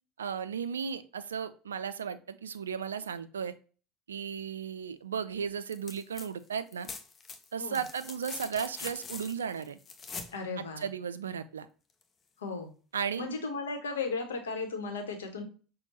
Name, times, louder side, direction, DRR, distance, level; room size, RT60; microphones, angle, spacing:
voice 1, 0.2-3.5 4.1-6.9 7.5-9.8 10.6-11.7 12.9-13.3, right 7 dB, 80° right, 12 dB, 0.3 m, -35 dB
sound 1, 5.7-6.3 6.5-10.4 12.0-12.1, left 4 dB, 35° left, 0.7 m, -43 dB
voice 2, 10.3-10.8 12.4-12.7 13.2-15.4, left 4 dB, 80° left, 4 dB, 1.0 m, -35 dB
5.9 x 2.3 x 2.8 m, 0.37 s
figure-of-eight pair, 70°, 0 cm